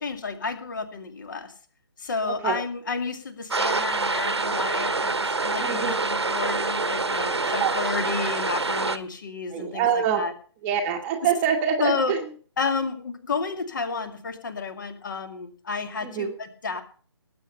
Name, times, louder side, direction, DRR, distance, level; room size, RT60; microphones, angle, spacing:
voice 1, 0.0-1.5 2.0-10.3 11.8-12.1 12.6-16.8, left 4 dB, 45° left, 9 dB, 2.4 m, -31 dB
sound 1, 3.5-9.0, right 3 dB, 70° right, 1.3 m, -26 dB
voice 2, 5.6-6.0 7.6-7.7 9.5-10.3 10.6-12.2 16.0-16.3, right 7 dB, 15° right, 4 dB, 1.3 m, -25 dB
19.0 x 8.6 x 5.5 m, 0.43 s
figure-of-eight pair, 145°, 15 cm